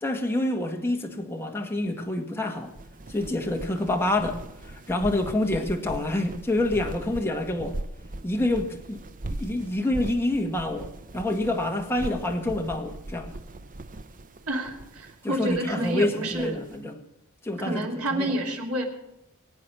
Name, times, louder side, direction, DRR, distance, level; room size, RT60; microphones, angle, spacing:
voice 1, 0.0-2.7 3.1-7.8 8.2-9.0 9.3-10.9 11.1-13.3 15.2-17.0 17.4-18.3, left 1 dB, 10° left, 1.8 m, -27 dB
sound 1, 2.6-16.8, right 1 dB, 40° right, 0.7 m, -40 dB
voice 2, 14.5-16.5 17.6-18.8, right 1 dB, 75° right, 3.4 m, -29 dB
22.5 x 8.7 x 6.1 m
head